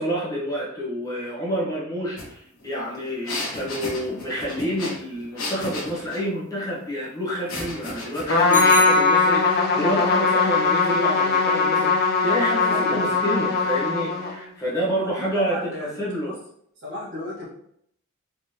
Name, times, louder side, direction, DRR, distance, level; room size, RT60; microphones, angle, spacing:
voice 1, 0.0-16.4, equal, 15° left, -7 dB, 0.9 m, -28 dB
sound 1, 2.2-2.3 2.6-6.3 7.5-9.0, left 2 dB, 75° left, 1.0 m, -34 dB
Trumpet, 8.3-14.5, left 4 dB, 45° left, 0.5 m, -20 dB
Bicycle bell, 8.5-9.8, right 2 dB, 10° right, 0.4 m, -32 dB
voice 2, 12.7-13.2 15.0-15.9 16.2-16.4 16.8-17.5, left 1 dB, 55° right, -6 dB, 1.4 m, -34 dB
3.5 x 3.2 x 2.7 m, 0.70 s
head